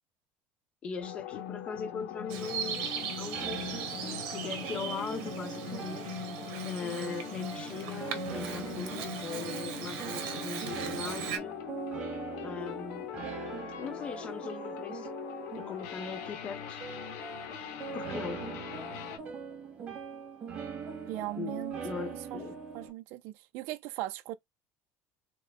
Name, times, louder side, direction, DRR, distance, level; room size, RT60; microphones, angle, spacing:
voice 1, 0.8-4.0 4.3-6.1 6.6-11.6 12.4-13.1 13.8-15.1 15.6-16.8 17.9-18.4 21.3-22.6, left 5 dB, 25° left, 0.6 m, -40 dB
sound 1, 1.0-19.2, left 9 dB, 75° left, 1.2 m, -41 dB
Bird vocalization bird call bird song, 2.3-11.4, right 8 dB, 90° right, 1.1 m, -39 dB
sound 2, 3.3-22.9, right 6 dB, 35° right, 1.6 m, -42 dB
voice 2, 21.1-22.4 22.7-24.4, right 16 dB, 60° right, 0.5 m, -39 dB
4.5 x 2.1 x 3.5 m
cardioid pair, 170°, 4 cm